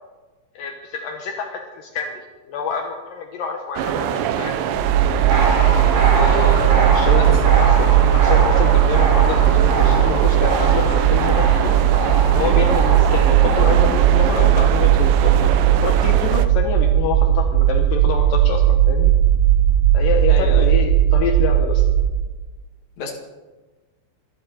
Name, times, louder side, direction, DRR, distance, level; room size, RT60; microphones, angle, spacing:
voice 1, 0.5-4.5 6.4-11.8 12.2-15.5 15.8-19.1 19.9-21.9, left 6 dB, 70° left, 2 dB, 2.2 m, -27 dB
sound 1, 3.8-16.5, right 9 dB, 80° right, 3.3 m, -24 dB
sound 2, 4.7-22.1, right 11 dB, 20° left, 7.1 m, -17 dB
sound 3, 5.3-13.9, right 1 dB, 40° right, 5.5 m, -25 dB
voice 2, 6.1-6.6 20.3-20.7 23.0-23.1, left 3 dB, 45° left, 0 dB, 2.9 m, -28 dB
27.0 x 12.5 x 4.4 m, 1.2 s
omnidirectional pair, 5.6 m